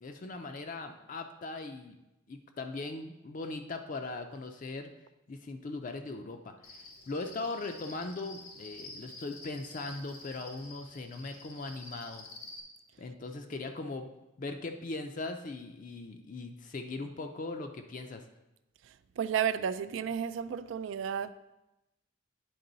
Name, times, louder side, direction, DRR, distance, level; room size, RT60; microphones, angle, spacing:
voice 1, 0.0-2.0 2.3-4.9 5.3-12.3 13.0-14.1 14.4-18.3, left 3 dB, 40° left, 0.4 m, -39 dB
Cricket, 6.6-12.6, left 2 dB, 90° left, 1.3 m, -49 dB
voice 2, 19.2-21.3, right 8 dB, 65° right, 0.3 m, -32 dB
9.4 x 3.7 x 3.9 m
head